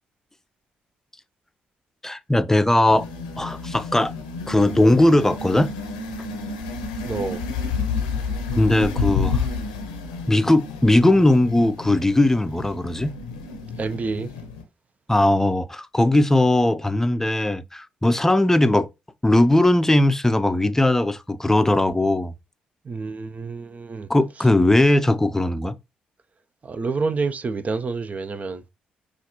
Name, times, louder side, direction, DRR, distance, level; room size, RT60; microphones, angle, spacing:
voice 1, 2.0-3.1 3.4-4.1 4.5-5.7 8.5-9.5 10.3-13.1 15.1-18.9 19.2-22.3 24.1-25.7, left 1 dB, 10° left, 0.5 m, -19 dB
sound 1, 2.9-14.6, left 4 dB, 90° left, 0.7 m, -30 dB
voice 2, 7.1-7.5 13.8-14.3 22.8-24.1 26.6-28.6, right 4 dB, 40° right, 0.5 m, -28 dB
5.6 x 2.5 x 2.9 m
hypercardioid pair, 45°, 4 cm